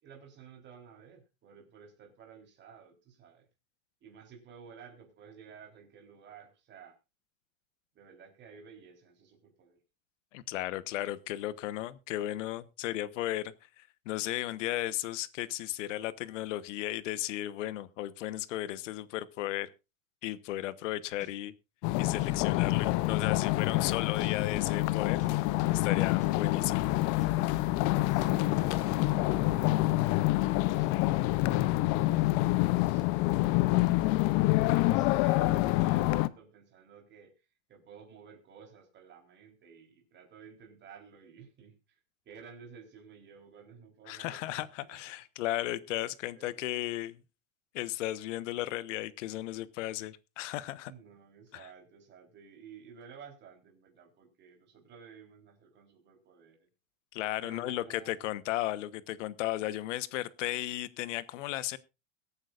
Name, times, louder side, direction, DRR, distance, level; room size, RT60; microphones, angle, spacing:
voice 1, 0.0-3.5 4.0-7.0 7.9-9.8 28.1-32.0 32.7-34.0 34.8-37.3 37.7-42.0 42.3-45.0 46.3-46.7 50.8-56.7 57.4-58.4, right 6 dB, 25° right, 2 dB, 3.9 m, -53 dB
voice 2, 10.3-19.7 20.2-21.5 22.0-25.2 25.7-26.9 44.1-47.2 47.7-50.9 51.5-51.7 57.1-61.8, left 15 dB, 65° left, 16 dB, 1.2 m, -35 dB
sound 1, 21.2-21.3 22.2-22.3 23.2-23.3 24.2-24.3 25.2-25.3 26.2-26.3 27.2-27.3 28.2-28.3, left 2 dB, 20° left, 2.9 m, -53 dB
sound 2, 21.8-36.3, left 18 dB, 35° left, 0.6 m, -27 dB
22.0 x 8.9 x 2.5 m, 0.28 s
supercardioid pair, 145°, 39 cm